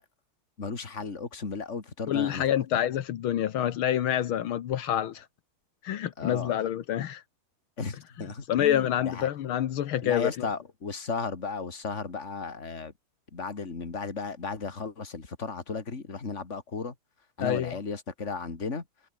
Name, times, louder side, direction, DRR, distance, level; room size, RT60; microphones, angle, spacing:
voice 1, 0.6-2.4 6.2-6.6 7.8-9.3 10.0-12.9 13.3-16.9 17.4-18.8, left 4 dB, 35° left, 2.8 m, -35 dB
voice 2, 2.1-5.3 5.8-7.2 8.5-10.5 17.4-17.7, left 11 dB, 80° left, 1.9 m, -27 dB
omnidirectional pair, 2.3 m